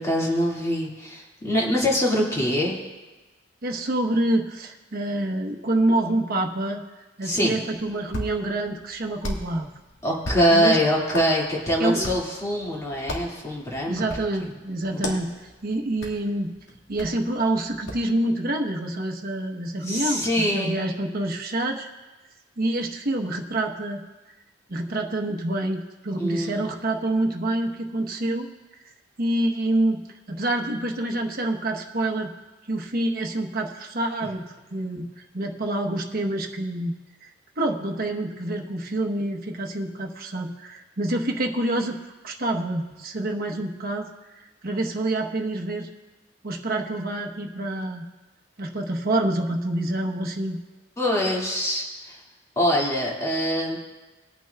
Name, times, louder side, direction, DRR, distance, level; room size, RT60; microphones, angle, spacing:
voice 1, 0.0-2.8 7.2-7.5 10.0-14.1 14.9-15.2 19.8-20.8 26.2-26.6 51.0-52.2 52.6-53.8, equal, 15° left, -4 dB, 2.1 m, -24 dB
voice 2, 3.6-6.8 7.2-9.7 10.5-10.8 11.8-12.0 13.9-15.3 15.6-16.5 16.9-21.9 22.6-24.0 24.7-28.5 28.8-28.9 29.2-30.0 30.3-32.3 32.7-34.4 34.7-35.1 35.3-36.9 37.6-42.0 42.2-44.1 44.6-45.9 46.4-48.0 48.6-50.6, right 1 dB, 50° right, 2 dB, 1.0 m, -27 dB
Hands, 7.7-18.1, left 1 dB, 80° left, 1.9 m, -38 dB
21.0 x 9.0 x 2.3 m, 1.2 s
head